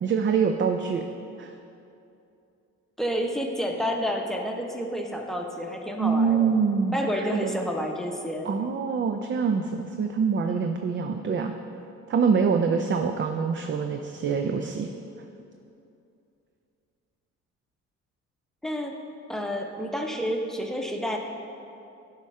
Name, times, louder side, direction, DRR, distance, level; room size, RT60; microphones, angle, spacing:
voice 1, 0.0-1.0 1.4-1.5 6.0-7.6 8.4-11.5 12.1-14.9, right 5 dB, 40° right, 5 dB, 0.5 m, -25 dB
voice 2, 3.0-6.5 6.9-8.5 18.6-19.0 19.3-21.2, equal, ahead, 1 dB, 0.8 m, -29 dB
10.5 x 3.6 x 5.5 m, 2.7 s
cardioid pair, 90°, 30 cm